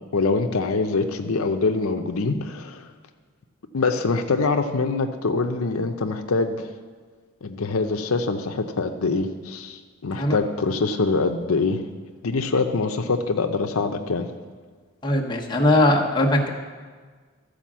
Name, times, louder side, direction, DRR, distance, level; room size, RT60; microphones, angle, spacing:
voice 1, 0.1-2.9 3.7-6.7 7.4-11.9 12.2-14.3, left 3 dB, 85° left, 6 dB, 0.6 m, -24 dB
voice 2, 15.0-16.5, left 1 dB, 20° left, -1 dB, 1.0 m, -20 dB
13.0 x 5.0 x 7.4 m, 1.5 s
head